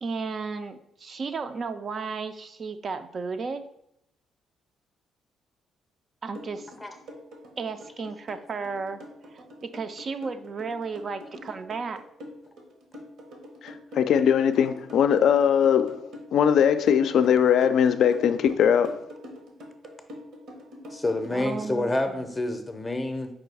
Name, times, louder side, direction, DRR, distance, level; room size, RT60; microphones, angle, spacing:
voice 1, 0.0-3.6 6.2-6.7 7.6-9.0 9.3-12.0 21.3-22.2, right 4 dB, 45° right, 0.3 m, -34 dB
sound 1, 6.3-21.7, equal, 80° right, 1.0 m, -44 dB
voice 2, 13.6-19.0, left 8 dB, 70° left, 0.3 m, -21 dB
voice 3, 20.9-23.3, left 2 dB, 20° left, 0.5 m, -28 dB
4.8 x 2.3 x 4.7 m
cardioid pair, 90°, 0 cm